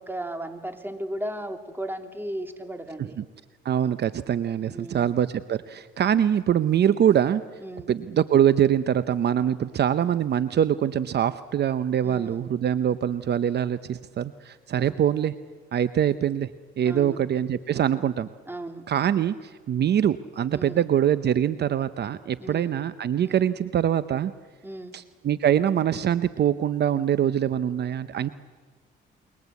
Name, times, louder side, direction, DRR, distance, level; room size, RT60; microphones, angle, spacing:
voice 1, 0.0-3.2 4.7-5.1 7.6-7.9 12.0-12.5 14.8-15.0 16.8-17.2 18.5-18.8 20.5-20.8 22.4-22.7 23.2-23.5 24.6-25.0, right 1 dB, 10° right, 6 dB, 2.7 m, -35 dB
voice 2, 3.6-7.4 7.9-15.3 15.7-16.5 16.8-18.3 18.9-24.3 24.9-28.3, right 9 dB, 55° right, 13 dB, 0.8 m, -24 dB
29.0 x 22.5 x 8.3 m, 1.5 s
cardioid pair, 90°, 20 cm